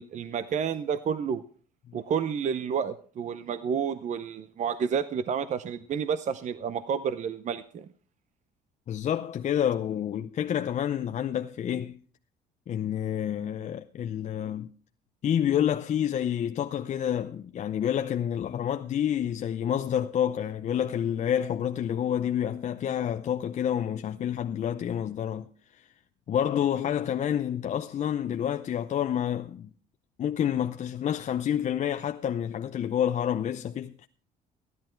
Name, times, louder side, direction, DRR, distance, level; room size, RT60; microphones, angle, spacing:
voice 1, 0.0-1.4 1.9-7.9, right 7 dB, 45° right, 0.7 m, -30 dB
voice 2, 8.9-12.0 12.7-14.7 15.2-25.5 25.7-25.9 26.3-29.7 30.2-34.1, left 9 dB, 45° left, 0.6 m, -28 dB
15.0 x 11.0 x 4.5 m
cardioid pair, 110°, 17 cm